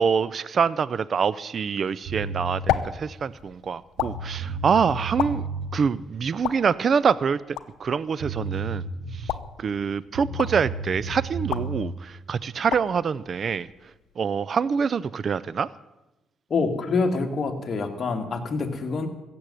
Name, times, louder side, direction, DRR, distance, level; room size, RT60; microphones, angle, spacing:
voice 1, 0.0-5.4 5.7-8.8 9.1-9.2 9.6-13.7 14.2-15.7, right 6 dB, 50° right, 19 dB, 0.4 m, -25 dB
sound 1, 2.0-14.2, left 11 dB, 90° left, 0.7 m, -35 dB
sound 2, 2.1-2.6 3.6-3.7 4.0-5.7 7.8-7.9 8.2-9.4 10.1-11.8, right 3 dB, 70° right, 3.4 m, -32 dB
voice 2, 16.5-19.1, left 4 dB, 45° left, 5 dB, 2.1 m, -26 dB
15.5 x 7.7 x 9.7 m, 0.99 s
cardioid pair, 90°, 0 cm